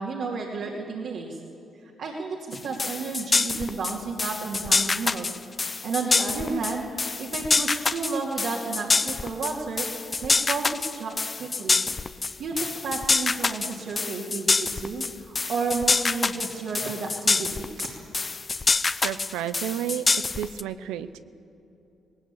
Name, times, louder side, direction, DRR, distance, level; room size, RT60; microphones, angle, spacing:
voice 1, 0.0-1.4 2.0-5.4 5.7-9.9 10.2-11.8 12.4-17.9, right 4 dB, 70° right, -3 dB, 2.7 m, -32 dB
sound 1, 2.5-20.6, left 4 dB, 35° left, 0.7 m, -26 dB
voice 2, 18.9-20.1 20.4-21.2, right 11 dB, 90° right, 12 dB, 0.7 m, -31 dB
19.0 x 18.5 x 8.4 m, 2.8 s
supercardioid pair, 60°, 0 cm